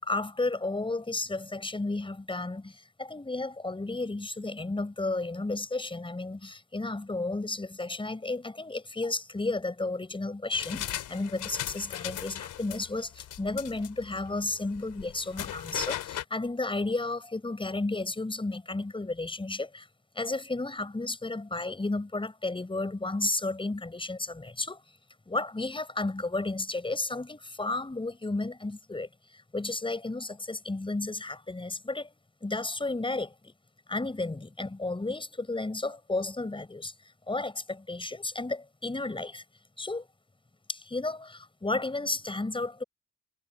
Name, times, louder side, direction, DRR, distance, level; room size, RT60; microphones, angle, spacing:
voice 1, 0.0-19.9 20.1-24.8 25.3-32.1 32.4-33.5 33.9-36.9 37.3-39.4 39.8-40.1 40.7-42.8, left 2 dB, 15° left, 5.0 m, -33 dB
sound 1, 10.5-16.2, left 12 dB, 80° left, 3.5 m, -38 dB
cardioid pair, 90°, 30 cm